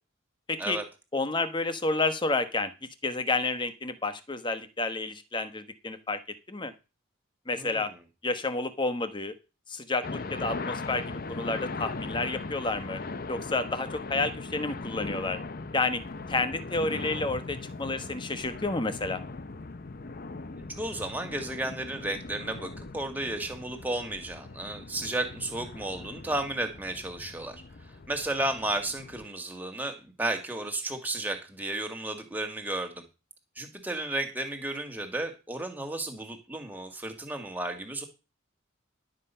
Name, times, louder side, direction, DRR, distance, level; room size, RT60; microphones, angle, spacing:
voice 1, 0.5-0.8 1.1-2.7 3.0-6.2 6.5-6.7 7.5-7.9 8.2-9.4 9.7-13.0 13.3-15.4 15.7-16.0 16.3-19.2, left 3 dB, 25° left, 10 dB, 1.1 m, -30 dB
voice 2, 7.5-8.0 20.6-27.6 28.1-33.0 33.6-38.0, right 2 dB, 10° right, 4 dB, 1.9 m, -33 dB
sound 1, 10.0-29.2, left 3 dB, 45° left, 0.7 m, -39 dB
11.5 x 7.7 x 5.6 m, 0.28 s
head